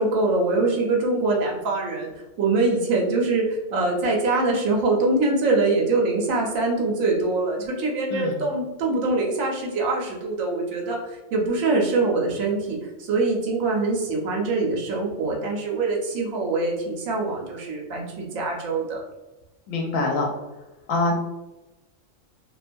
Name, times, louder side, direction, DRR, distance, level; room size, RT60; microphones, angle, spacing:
voice 1, 0.0-2.1 2.4-19.0, right 3 dB, 85° right, -2 dB, 1.1 m, -24 dB
voice 2, 8.1-8.4 19.7-20.3 20.9-21.2, left 2 dB, 80° left, 0 dB, 1.0 m, -24 dB
2.7 x 2.2 x 2.5 m, 1.0 s
omnidirectional pair, 1.4 m